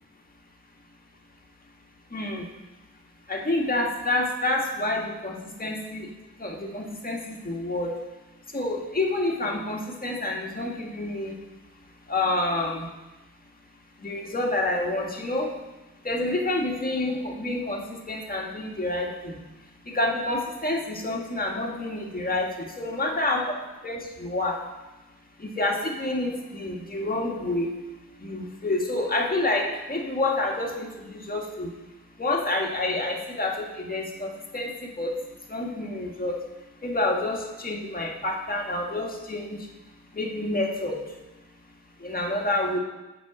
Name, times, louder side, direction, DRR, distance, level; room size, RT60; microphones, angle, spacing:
voice 1, 2.1-2.5 3.3-6.1 6.4-7.9 8.5-11.3 12.1-12.9 14.0-15.5 16.0-19.4 19.9-23.5 23.8-24.6 25.4-27.7 28.2-31.7 32.2-35.2 35.5-36.4 36.8-39.6 40.1-41.0 42.0-42.8, left 2 dB, 25° left, 0 dB, 1.9 m, -28 dB
7.3 x 5.6 x 6.2 m, 1.1 s
supercardioid pair, 50°, 34 cm